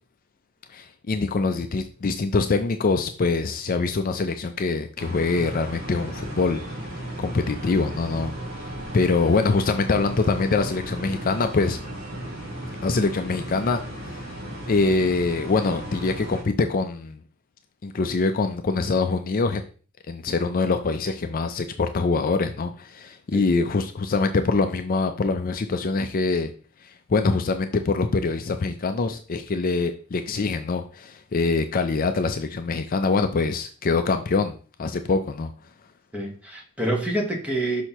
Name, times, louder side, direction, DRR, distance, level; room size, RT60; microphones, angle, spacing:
voice 1, 0.7-11.8 12.8-17.2 17.8-19.7 20.1-26.5 26.8-35.5, left 3 dB, 40° left, 8 dB, 0.4 m, -24 dB
sound 1, 5.0-16.4, right 1 dB, 65° right, 1.9 m, -35 dB
voice 2, 36.1-37.8, right 1 dB, 5° right, 0 dB, 1.2 m, -27 dB
6.2 x 5.5 x 3.0 m, 0.39 s
head